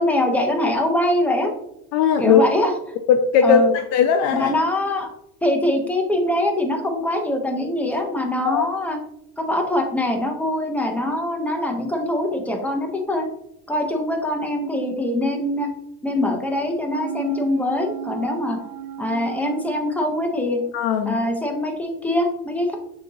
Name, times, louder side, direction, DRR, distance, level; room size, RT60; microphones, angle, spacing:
voice 1, 0.0-1.5 2.2-2.7 3.4-3.7 4.3-5.1 5.4-9.0 9.4-13.3 13.7-15.7 16.0-18.6 19.0-20.6 21.1-22.8, left 1 dB, 5° left, 2 dB, 0.5 m, -23 dB
voice 2, 1.9-2.4 3.1-4.5 8.4-8.7 20.7-21.2, left 7 dB, 60° left, 7 dB, 0.5 m, -18 dB
sound 1, 16.9-20.7 21.0-21.1, right 9 dB, 55° right, 0.5 m, -35 dB
6.3 x 2.8 x 2.7 m, 0.79 s
supercardioid pair, 130°, 41 cm